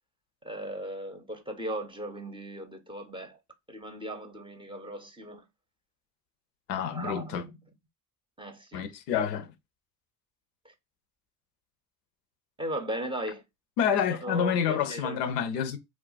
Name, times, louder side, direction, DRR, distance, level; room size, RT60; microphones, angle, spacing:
voice 1, 0.4-3.4 3.7-5.4 6.9-7.6 8.4-8.9 12.6-13.4 14.1-15.2, right 1 dB, 10° right, 0.6 m, -37 dB
voice 2, 6.7-7.4 8.7-9.5 13.8-15.8, left 8 dB, 85° left, 0.6 m, -28 dB
2.3 x 2.1 x 3.9 m
hypercardioid pair, 65°, 48 cm